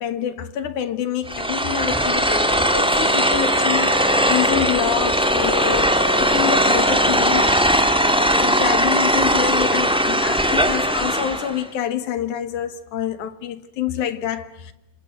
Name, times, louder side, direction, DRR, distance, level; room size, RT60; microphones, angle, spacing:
voice 1, 0.0-14.7, left 10 dB, 70° left, 2.5 m, -27 dB
sound 1, 1.3-11.6, equal, 5° right, 0.7 m, -19 dB
27.5 x 27.0 x 7.7 m
omnidirectional pair, 3.9 m